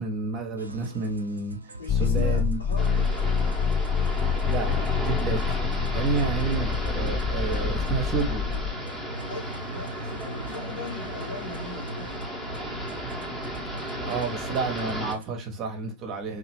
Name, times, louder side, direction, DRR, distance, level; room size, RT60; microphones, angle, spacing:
voice 1, 0.0-1.6 1.9-2.6 4.5-8.4 14.0-16.4, right 4 dB, 35° right, 0.7 m, -30 dB
sound 1, 0.6-15.4, right 2 dB, 75° right, 0.4 m, -40 dB
voice 2, 1.8-3.7 9.3-12.6, left 4 dB, 65° left, 1.2 m, -41 dB
sound 2, 1.9-8.7, left 6 dB, 35° left, 0.3 m, -26 dB
sound 3, 2.8-15.2, equal, 5° left, 0.8 m, -35 dB
2.8 x 2.4 x 2.8 m
figure-of-eight pair, 90°, 0 cm